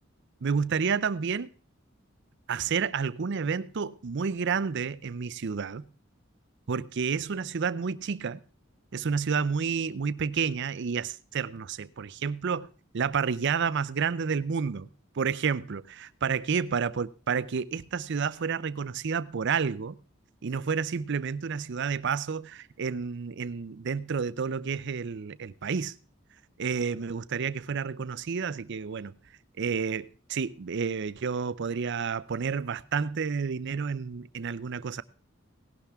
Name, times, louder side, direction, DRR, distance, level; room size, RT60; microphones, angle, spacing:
voice 1, 0.4-1.5 2.5-5.8 6.7-8.4 8.9-14.9 15.2-20.0 20.4-26.0 26.6-29.1 29.6-35.0, right 6 dB, 60° right, 0.5 m, -30 dB
17.5 x 11.5 x 3.5 m
head